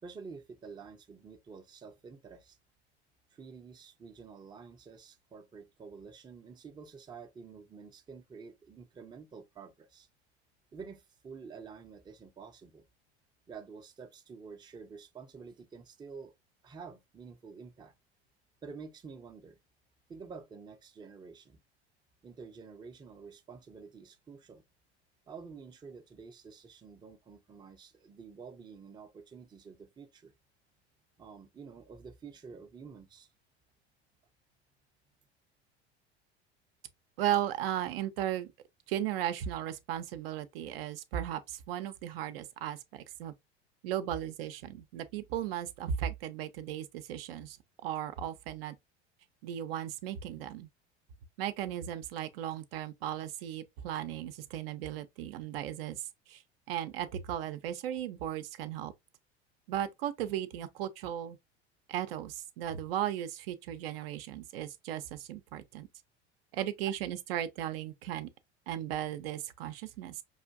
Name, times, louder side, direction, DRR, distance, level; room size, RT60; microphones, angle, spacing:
voice 1, 0.0-2.6 3.3-10.1 10.7-12.9 13.5-16.3 16.6-17.9 18.6-19.6 20.1-21.6 22.2-24.7 25.3-30.3 31.2-33.3, right 5 dB, 15° right, 0.5 m, -49 dB
voice 2, 37.2-38.5 38.9-43.3 43.8-47.6 47.8-48.7 49.4-50.7 51.4-56.4 56.7-58.9 59.7-61.4 61.9-65.9 66.5-68.3 68.7-70.2, right 11 dB, 60° right, 0.5 m, -36 dB
5.4 x 2.5 x 2.3 m
figure-of-eight pair, 75°, 34 cm